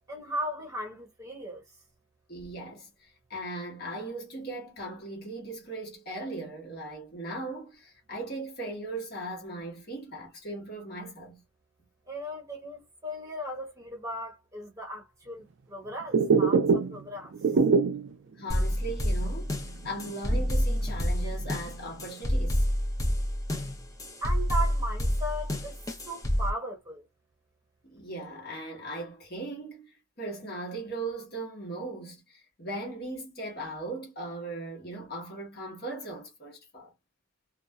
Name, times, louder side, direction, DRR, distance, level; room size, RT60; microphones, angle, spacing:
voice 1, 0.1-1.8 12.1-17.6 24.2-27.1, equal, 15° right, 1.0 m, -37 dB
voice 2, 2.3-11.4 18.4-19.5 19.8-22.6 27.8-36.9, right 2 dB, 50° left, 1.2 m, -38 dB
sound 1, 16.0-17.1 17.3-18.1 18.6-18.7 19.0-19.1 19.7-21.1 21.4-22.0, right 5 dB, 65° right, 0.4 m, -24 dB
sound 2, 18.5-26.5, equal, 15° left, 0.5 m, -28 dB
2.5 x 2.3 x 2.2 m
head